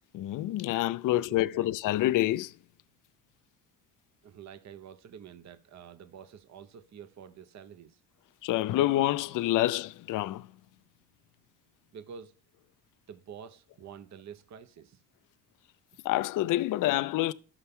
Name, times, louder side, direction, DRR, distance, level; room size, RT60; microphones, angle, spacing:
voice 1, 0.1-2.5 8.4-10.5 16.0-17.3, left 15 dB, 55° left, 0.5 m, -27 dB
sound 1, 0.6-3.5 4.1-4.4 8.7-13.0, left 12 dB, 85° left, 0.8 m, -51 dB
voice 2, 4.2-8.0 11.9-12.3 13.1-15.0, right 7 dB, 45° right, 0.8 m, -48 dB
13.0 x 5.6 x 3.6 m
supercardioid pair, 70°, 39 cm